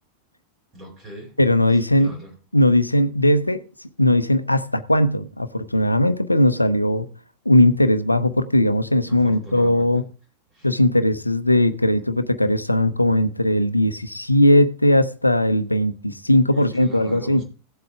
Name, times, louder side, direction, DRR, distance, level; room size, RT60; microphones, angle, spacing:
voice 1, 0.7-1.3 2.0-2.3 9.1-10.0 10.5-10.7 16.5-17.4, right 1 dB, 25° right, 4.6 m, -40 dB
voice 2, 1.4-2.2 2.5-3.7 4.0-7.1 7.5-10.0 10.6-17.4, left 1 dB, 85° left, 0.7 m, -18 dB
16.5 x 7.8 x 3.5 m
figure-of-eight pair, 90°, 0 cm